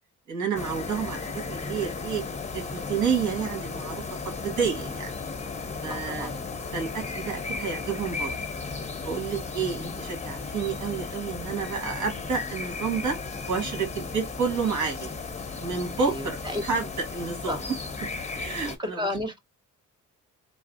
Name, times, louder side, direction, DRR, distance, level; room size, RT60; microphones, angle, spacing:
voice 1, 0.3-2.2 2.5-4.0 4.4-5.1 5.8-6.3 6.7-8.3 9.0-13.2 13.5-15.1 15.6-16.4 16.6-17.6 18.3-19.0, right 6 dB, 75° right, 2.3 m, -30 dB
sound 1, 0.5-18.8, left 4 dB, 20° left, 1.2 m, -35 dB
voice 2, 5.9-6.4 9.7-9.9 16.0-16.6 17.5-17.6 18.8-19.4, left 1 dB, 15° right, 1.1 m, -33 dB
3.9 x 2.3 x 2.7 m
cardioid pair, 90°, 30 cm